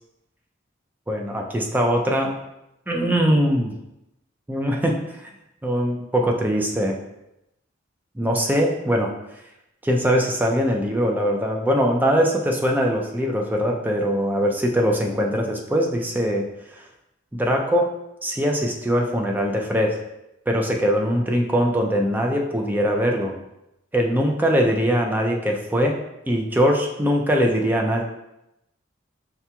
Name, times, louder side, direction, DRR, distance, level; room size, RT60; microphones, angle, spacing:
voice 1, 1.1-2.3 2.9-3.7 4.5-5.3 5.6-7.0 8.2-9.1 9.8-16.5 17.3-17.9 18.2-20.0 20.5-23.4 23.9-26.0 26.3-28.0, equal, 10° right, 1 dB, 0.3 m, -21 dB
5.7 x 2.8 x 2.2 m, 0.89 s
head